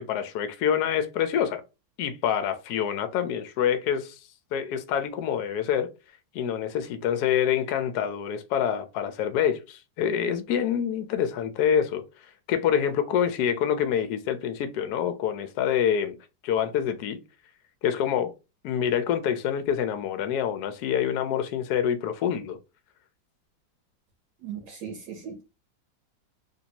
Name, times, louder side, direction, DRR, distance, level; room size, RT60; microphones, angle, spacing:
voice 1, 0.0-1.6 2.0-4.2 4.5-5.9 6.3-12.0 12.5-16.2 16.4-17.2 17.8-18.3 18.6-22.6, left 9 dB, 70° left, 1.0 m, -26 dB
voice 2, 24.4-25.4, right 7 dB, 70° right, 1.2 m, -38 dB
3.3 x 2.6 x 2.8 m
omnidirectional pair, 2.0 m